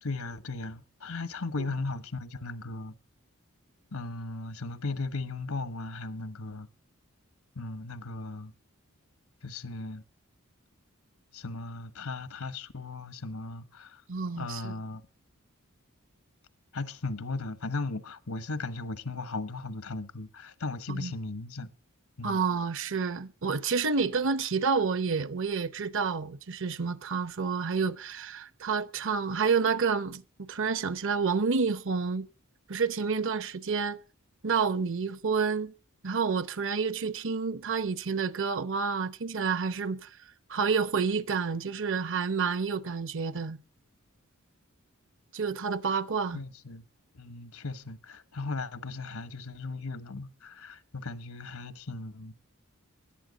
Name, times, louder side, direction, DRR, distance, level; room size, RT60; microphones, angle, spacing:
voice 1, 0.0-2.9 3.9-6.7 7.5-8.5 9.4-10.0 11.3-14.0 14.4-15.0 16.7-21.7 22.2-22.4 46.3-46.9 47.1-52.3, left 3 dB, 85° left, 1.1 m, -37 dB
voice 2, 14.1-14.7 20.9-21.1 22.2-32.3 32.7-34.0 34.4-35.7 36.0-40.1 40.5-43.6 45.3-46.4, right 5 dB, 60° right, 0.8 m, -29 dB
16.5 x 11.5 x 3.9 m
head